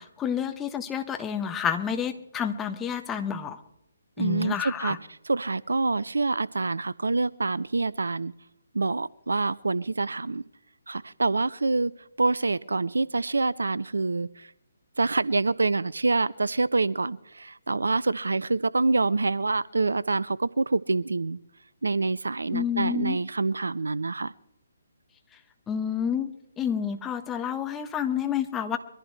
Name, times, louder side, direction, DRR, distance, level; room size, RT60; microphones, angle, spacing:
voice 1, 0.0-3.6 4.2-5.0 22.5-23.2 25.7-28.8, left 8 dB, 10° left, 6 dB, 1.2 m, -29 dB
voice 2, 4.2-5.0 5.2-8.3 8.7-10.4 10.9-11.9 12.2-14.5 15.0-21.4 21.8-24.3, right 3 dB, 65° right, 20 dB, 0.5 m, -26 dB
23.5 x 14.5 x 3.2 m, 0.85 s
figure-of-eight pair, 140°, 0 cm